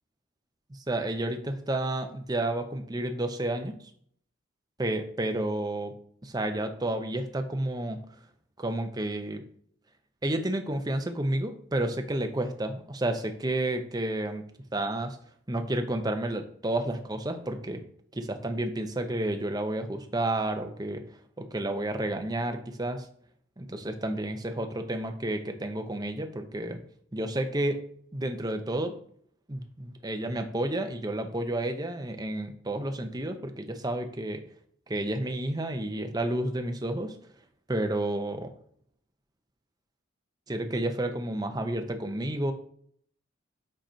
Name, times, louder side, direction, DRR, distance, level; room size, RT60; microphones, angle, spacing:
voice 1, 0.7-3.8 4.8-5.9 6.2-8.0 8.6-9.4 10.2-14.4 14.7-15.2 15.5-17.8 18.1-21.0 21.4-23.1 23.6-26.8 27.1-27.8 28.1-29.0 29.5-34.4 34.9-37.2 37.7-38.5 40.5-42.5, right 1 dB, 20° right, 6 dB, 0.6 m, -31 dB
7.7 x 2.9 x 5.0 m, 0.62 s
head